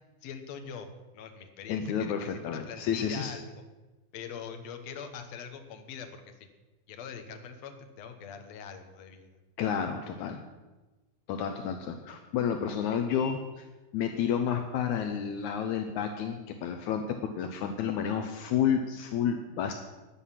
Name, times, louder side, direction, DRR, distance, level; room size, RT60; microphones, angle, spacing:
voice 1, 0.2-0.9 1.1-3.6 4.1-6.3 6.9-9.4, left 7 dB, 65° left, 7 dB, 1.9 m, -43 dB
voice 2, 1.7-3.3 9.6-10.4 11.3-13.7 13.9-17.0 17.4-19.7, left 8 dB, 80° left, 6 dB, 1.7 m, -30 dB
13.0 x 10.0 x 5.8 m, 1.2 s
omnidirectional pair, 4.3 m